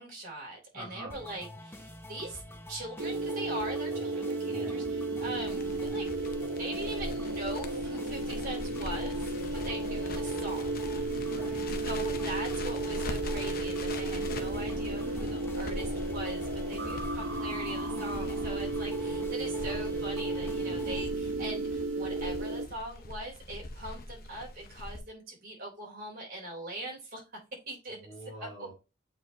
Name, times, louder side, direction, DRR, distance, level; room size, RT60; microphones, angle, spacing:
voice 1, 0.0-2.4 2.7-6.1 6.6-10.7 11.8-27.2 27.7-28.0 28.4-28.5, right 1 dB, 50° right, -2 dB, 3.4 m, -41 dB
voice 2, 0.7-1.1 4.5-4.7 11.1-11.8 27.9-28.7, right 1 dB, 5° right, -8 dB, 2.9 m, -45 dB
sound 1, 1.1-21.1, left 1 dB, 10° left, 0.7 m, -47 dB
sound 2, 3.0-22.7, right 2 dB, 75° right, 0.7 m, -34 dB
Crackle, 5.2-25.0, left 1 dB, 50° left, 0.8 m, -42 dB
8.1 x 4.8 x 2.8 m, 0.28 s
head